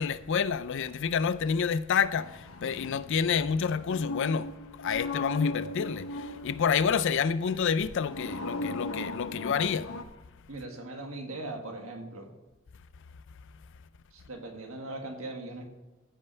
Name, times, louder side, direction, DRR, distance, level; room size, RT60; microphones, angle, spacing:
voice 1, 0.0-4.5 4.8-9.9, left 6 dB, 60° left, 0.4 m, -28 dB
sound 1, 2.2-6.7 7.9-10.0, left 2 dB, 90° left, 0.9 m, -37 dB
voice 2, 10.5-12.3 14.1-15.7, right 2 dB, 75° right, 1.7 m, -39 dB
15.0 x 5.4 x 4.5 m
head